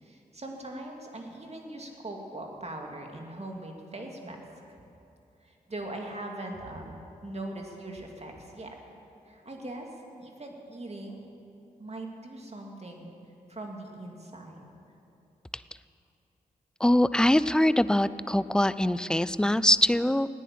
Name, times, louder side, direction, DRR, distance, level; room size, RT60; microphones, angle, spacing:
voice 1, 0.0-4.4 5.4-8.8 9.3-9.9 10.2-11.2 11.8-13.1 13.5-14.7, right 1 dB, 40° right, 1 dB, 2.5 m, -40 dB
voice 2, 16.8-20.3, left 1 dB, 5° left, 16 dB, 0.4 m, -23 dB
15.0 x 9.9 x 7.7 m, 2.7 s
cardioid pair, 40°, 17 cm